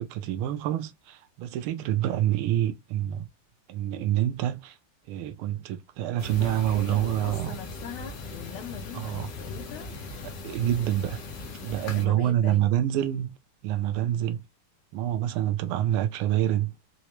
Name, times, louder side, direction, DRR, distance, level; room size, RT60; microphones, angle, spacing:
voice 1, 0.0-3.3 3.7-4.8 5.1-7.6 8.9-9.3 10.2-11.2 11.6-13.4 13.6-14.4 14.9-16.7, right 12 dB, 85° right, 1.5 m, -27 dB
sound 1, 6.2-12.1, left 3 dB, 60° left, 1.4 m, -39 dB
voice 2, 6.7-9.9 11.9-12.8, left 8 dB, 85° left, 1.5 m, -42 dB
4.5 x 2.1 x 2.9 m
omnidirectional pair, 2.3 m